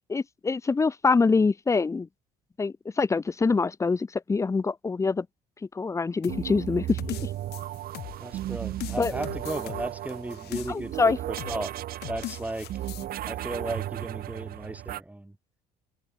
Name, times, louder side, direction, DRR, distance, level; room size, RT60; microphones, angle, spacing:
voice 1, 0.1-2.1 2.6-5.3 5.7-7.3 9.0-9.1 10.7-11.2, left 4 dB, 15° left, 0.6 m, -25 dB
sound 1, 6.2-8.4 8.8-11.0 11.4-11.6 12.0-13.1, left 17 dB, 70° left, 1.7 m, -39 dB
sound 2, 6.3-15.0, right 13 dB, 60° right, 1.5 m, -35 dB
voice 2, 8.2-11.8 12.1-12.7 13.3-15.4, right 1 dB, 10° right, 2.4 m, -36 dB
supercardioid pair, 85°, 17 cm